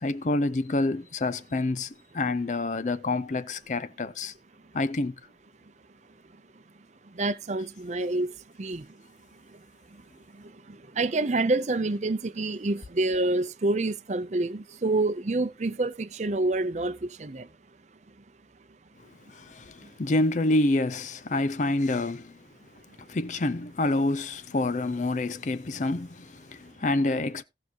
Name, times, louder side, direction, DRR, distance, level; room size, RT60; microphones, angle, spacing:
voice 1, 0.0-4.3 4.7-5.2 19.3-22.3 23.1-27.4, left 2 dB, 45° left, 0.5 m, -27 dB
voice 2, 7.1-8.9 9.5-9.6 9.9-10.0 10.3-17.5 19.8-19.9, right 2 dB, 40° right, 0.6 m, -28 dB
17.5 x 5.8 x 2.9 m
head